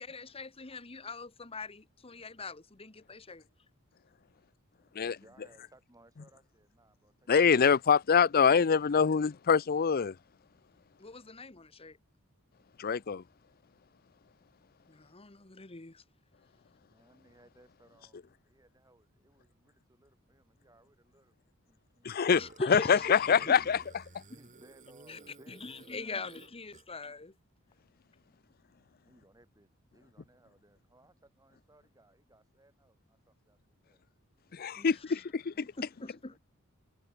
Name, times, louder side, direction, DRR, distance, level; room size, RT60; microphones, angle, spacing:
voice 1, 0.0-3.4 11.0-12.0 14.9-16.0 22.3-23.6 25.1-25.2 25.5-27.3 34.8-34.9 35.6-36.3, left 3 dB, 30° left, 1.4 m, -42 dB
voice 2, 4.8-7.9 16.8-21.3 21.7-22.3 24.3-26.4 29.0-34.0 36.2-36.4, right 1 dB, 15° right, 5.0 m, -64 dB
voice 3, 7.3-10.2 12.8-13.2 22.0-22.4 22.7-23.8 34.5-35.6, left 6 dB, 45° left, 0.5 m, -25 dB
Burping eructation, 22.3-27.0, right 3 dB, 35° right, 1.1 m, -54 dB
head